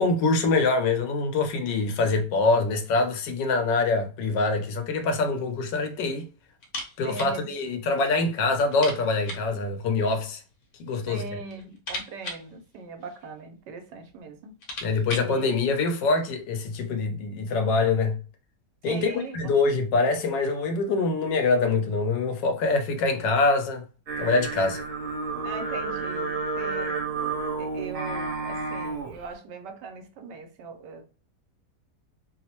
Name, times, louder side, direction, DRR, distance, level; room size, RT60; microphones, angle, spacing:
voice 1, 0.0-6.3 7.0-10.4 10.8-11.4 14.8-18.2 18.8-23.8 24.2-24.8, left 3 dB, 85° left, 1.3 m, -24 dB
sound 1, 6.6-7.4 7.6-7.7 8.1-8.2 8.7-9.6 10.5-11.1 11.4-13.4 14.1-14.2 14.4-15.4, left 1 dB, 65° left, 1.2 m, -38 dB
voice 2, 7.0-7.5 11.1-14.6 15.2-15.5 18.9-19.5 25.4-27.0 27.6-31.0, right 5 dB, 85° right, 1.2 m, -40 dB
Singing, 24.1-29.2, right 3 dB, 55° right, 1.2 m, -31 dB
3.1 x 2.0 x 2.8 m
omnidirectional pair, 1.9 m